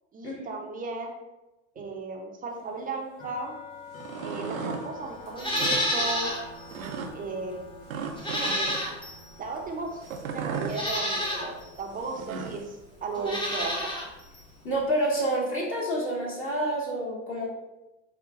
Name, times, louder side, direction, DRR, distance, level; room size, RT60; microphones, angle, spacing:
voice 1, 0.1-1.1 1.8-3.6 4.2-6.3 7.1-7.6 8.3-8.7 9.4-13.9, right 3 dB, 20° right, 1 dB, 0.6 m, -35 dB
sound 1, 2.6-12.4, left 2 dB, 85° left, 1.3 m, -47 dB
sound 2, 3.9-4.8 5.5-5.8 6.7-7.1 7.9-8.8 10.0-10.8 12.0-12.6, right 6 dB, 90° right, 0.6 m, -35 dB
Livestock farm animals working animals, 5.3-6.4 6.8-6.9 8.1-9.2 10.0-10.1 10.7-11.5 13.1-14.1 14.3-14.4, left 1 dB, 10° left, 0.7 m, -29 dB
voice 2, 14.6-17.5, right 1 dB, 30° left, -5 dB, 1.1 m, -28 dB
5.4 x 2.1 x 2.4 m, 1.0 s
hypercardioid pair, 85°, 40 cm